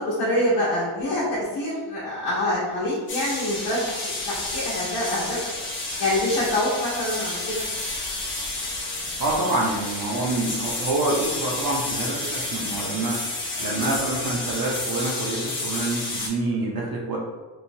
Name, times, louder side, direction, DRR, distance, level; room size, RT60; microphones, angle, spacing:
voice 1, 0.0-5.4 6.0-7.6, left 1 dB, 80° left, -7 dB, 0.9 m, -25 dB
sound 1, 3.1-16.3, left 2 dB, 25° left, 0.4 m, -30 dB
voice 2, 9.2-13.2 13.6-17.2, right 2 dB, 50° right, -3 dB, 0.5 m, -26 dB
3.0 x 2.0 x 2.6 m, 1.3 s
cardioid pair, 155°, 49 cm